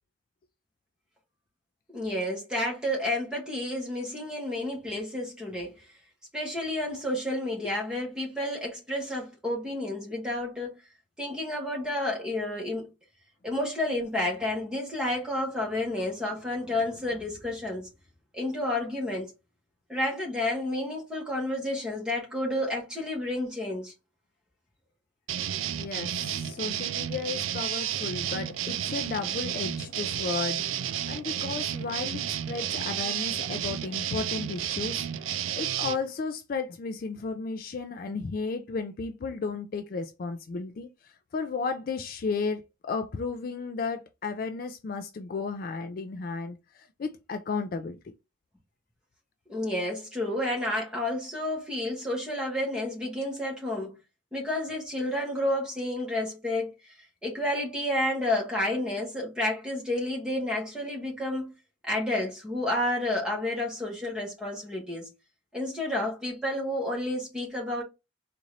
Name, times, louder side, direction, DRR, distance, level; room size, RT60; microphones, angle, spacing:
voice 1, 1.9-5.8 6.3-10.8 11.2-12.9 13.4-17.9 18.3-19.3 19.9-23.9 49.5-54.0 54.3-56.7 57.2-61.5 61.8-65.1 65.5-67.8, left 1 dB, 5° right, 1.3 m, -30 dB
sound 1, 25.3-36.0, right 10 dB, 85° right, 0.4 m, -32 dB
voice 2, 25.7-35.1 35.6-48.1, left 4 dB, 45° left, 0.3 m, -34 dB
3.9 x 2.5 x 3.1 m
head